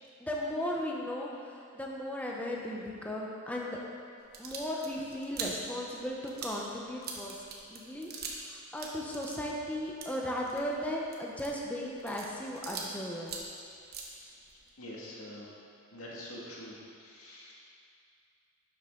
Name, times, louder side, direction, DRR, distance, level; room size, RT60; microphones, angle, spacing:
voice 1, 0.2-3.8 4.4-7.4 7.7-8.1 8.4-13.5, equal, 5° left, -3 dB, 0.9 m, -36 dB
sound 1, 4.2-8.5 8.7-13.0 13.2-14.7, right 4 dB, 50° right, 1.2 m, -43 dB
voice 2, 13.7-14.3 14.8-15.5 15.9-17.5, left 1 dB, 90° left, -5 dB, 2.1 m, -46 dB
11.0 x 7.7 x 3.9 m, 2.4 s
head